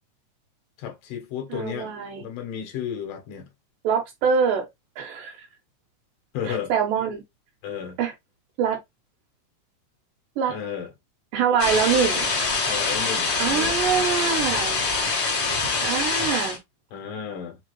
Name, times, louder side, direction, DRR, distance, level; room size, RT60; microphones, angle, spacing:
voice 1, 0.8-1.9 2.2-3.5 6.3-6.7 7.6-8.0 10.5-10.9 12.7-14.1 16.9-17.6, left 8 dB, 60° left, 2.0 m, -33 dB
voice 2, 1.5-2.3 3.8-4.7 5.0-5.4 6.5-7.2 8.0-8.1 8.6-8.8 10.4-10.6 11.3-12.3 13.4-14.8 15.8-16.6, right 7 dB, 85° right, 2.7 m, -24 dB
sound 1, 11.6-16.6, left 4 dB, 45° left, 1.4 m, -24 dB
5.5 x 2.7 x 3.0 m
omnidirectional pair, 3.7 m